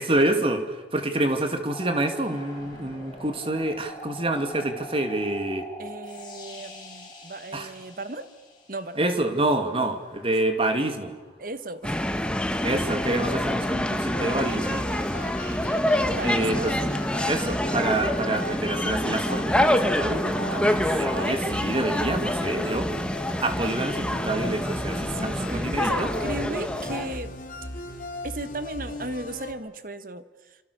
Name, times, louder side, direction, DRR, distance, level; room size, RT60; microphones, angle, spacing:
voice 1, 0.0-5.7 7.5-7.7 9.0-11.1 12.6-14.8 16.2-16.7 17.3-22.9 23.4-26.1, right 1 dB, 30° right, 6 dB, 2.5 m, -27 dB
sound 1, 1.7-9.2 10.0-13.0 15.7-16.1, equal, 25° left, 6.8 m, -45 dB
voice 2, 5.8-8.3 8.7-9.1 11.4-12.0 16.1-16.8 20.3-21.6 25.1-27.4 28.2-30.6, right 2 dB, 50° right, 11 dB, 1.4 m, -36 dB
sound 2, 11.8-27.2, left 1 dB, 5° left, 1.4 m, -27 dB
sound 3, 14.1-29.5, left 1 dB, 50° left, 2.4 m, -37 dB
27.5 x 27.5 x 6.9 m, 1.2 s
head